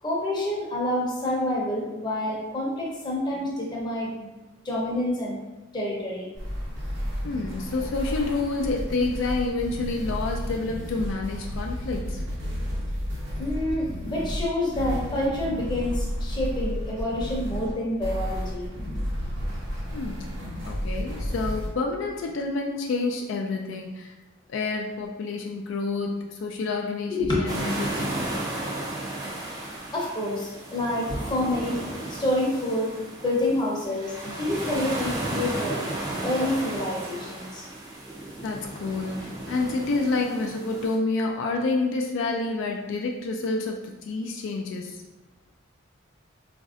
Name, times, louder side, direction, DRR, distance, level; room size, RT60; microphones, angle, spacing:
voice 1, 0.0-4.3 4.6-5.4 5.7-6.3 13.4-18.7 27.1-27.5 29.9-31.8 32.1-33.0 33.2-35.8 36.2-37.6, left 1 dB, 20° left, -4 dB, 0.7 m, -28 dB
sound 1, 6.3-21.7, equal, 65° right, 1.0 m, -32 dB
voice 2, 7.2-12.2 19.9-20.3 20.7-24.1 24.5-28.2 38.4-45.0, left 3 dB, 70° left, 1 dB, 0.3 m, -28 dB
sound 2, 27.5-41.0, right 1 dB, 20° right, 0.4 m, -34 dB
4.0 x 2.5 x 2.5 m, 1.1 s
head